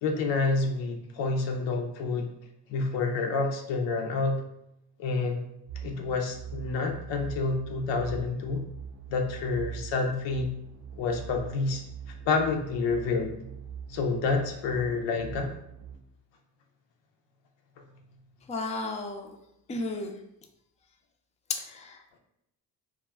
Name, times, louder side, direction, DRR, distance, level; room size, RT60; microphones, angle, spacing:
voice 1, 0.0-2.3 2.7-4.4 5.0-5.4 5.8-8.6 9.1-10.5 11.0-11.8 12.3-13.3 13.9-15.5, left 3 dB, 85° left, 3 dB, 0.5 m, -28 dB
sound 1, 5.7-16.0, right 7 dB, 75° right, 0.6 m, -43 dB
voice 2, 18.5-19.4 19.7-20.2 21.5-22.0, left 3 dB, 15° left, 4 dB, 0.4 m, -33 dB
2.2 x 2.1 x 3.3 m, 0.81 s
supercardioid pair, 55°, 43 cm